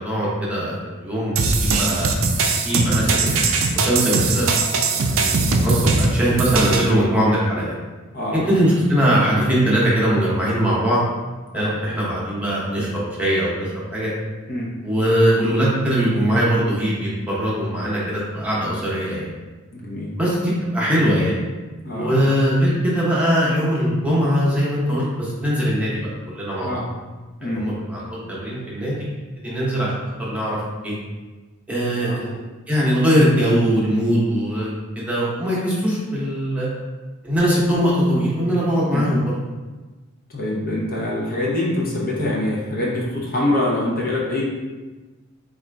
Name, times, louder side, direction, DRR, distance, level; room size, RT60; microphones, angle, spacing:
voice 1, 0.0-2.1 2.6-7.7 8.3-11.0 11.5-12.9 13.2-14.1 14.8-19.3 20.2-21.4 21.9-26.8 27.4-29.1 29.4-29.9 30.2-30.6 30.8-30.9 31.7-32.3 32.7-36.7 37.2-39.2, equal, 5° right, -7 dB, 0.9 m, -21 dB
sound 1, 1.4-6.9, right 3 dB, 70° right, 0.4 m, -20 dB
voice 2, 8.1-8.5 11.5-11.8 14.5-14.7 19.7-20.2 21.8-22.2 26.6-26.9 27.4-27.7 32.0-32.2 38.9-39.1 40.3-44.4, left 1 dB, 45° left, -4 dB, 0.7 m, -25 dB
4.2 x 2.5 x 3.4 m, 1.2 s
head